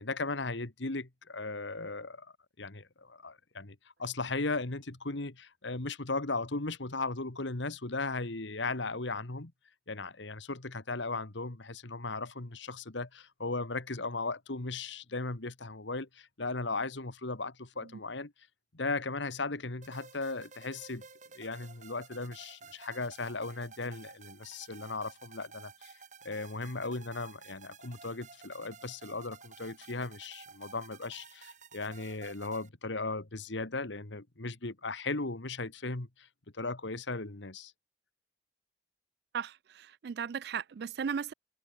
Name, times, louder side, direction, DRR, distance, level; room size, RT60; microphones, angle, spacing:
voice 1, 0.0-9.5 9.9-18.3 18.7-21.0 21.4-25.9 26.2-36.3 36.5-37.7, left 3 dB, 75° left, 1.8 m, -37 dB
sound 1, 19.8-32.7, right 5 dB, 40° right, 3.7 m, -53 dB
voice 2, 39.3-41.3, right 7 dB, 60° right, 0.3 m, -36 dB
head